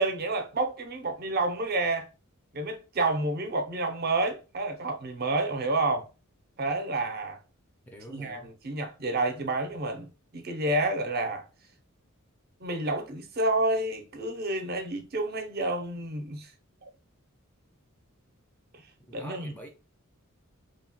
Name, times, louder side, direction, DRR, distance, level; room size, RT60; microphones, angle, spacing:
voice 1, 0.0-2.1 2.5-6.1 6.6-7.4 8.1-11.4 12.6-16.5 19.1-19.5, right 2 dB, 45° right, 0.5 m, -29 dB
voice 2, 7.9-8.5 19.0-19.7, equal, 5° left, 0.4 m, -46 dB
2.8 x 2.1 x 2.8 m
head